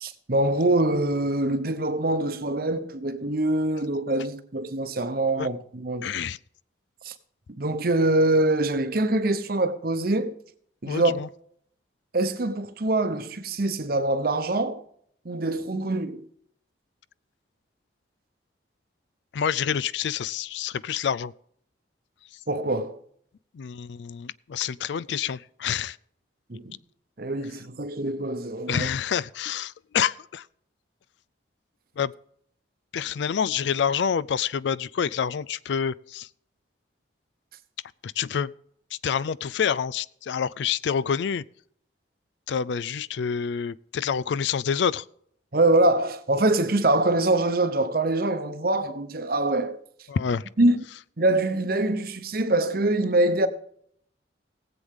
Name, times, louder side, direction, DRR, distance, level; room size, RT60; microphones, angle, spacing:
voice 1, 0.0-6.1 7.0-7.1 7.6-10.4 10.8-11.2 12.1-14.8 15.2-16.3 22.5-23.0 26.5-26.8 27.2-28.9 45.5-49.8 50.6-50.8 51.2-53.5, right 2 dB, 50° right, 0.9 m, -24 dB
voice 2, 6.0-6.4 10.9-11.3 19.3-21.3 23.5-26.0 28.7-30.4 32.0-32.1 32.9-36.3 38.0-38.5 39.0-41.4 42.5-45.0 50.1-50.4, left 7 dB, 70° left, 0.4 m, -27 dB
19.0 x 8.0 x 3.6 m
head